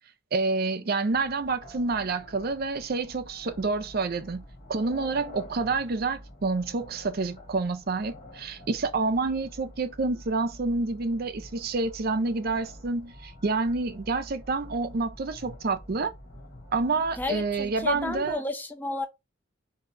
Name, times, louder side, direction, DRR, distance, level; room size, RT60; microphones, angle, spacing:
voice 1, 0.3-4.4 4.7-16.1 16.7-18.4, right 3 dB, 50° right, 0.5 m, -28 dB
sound 1, 1.1-18.3, left 1 dB, 40° left, 1.3 m, -47 dB
voice 2, 17.2-19.1, left 2 dB, 10° left, 0.6 m, -31 dB
3.7 x 2.7 x 4.3 m
head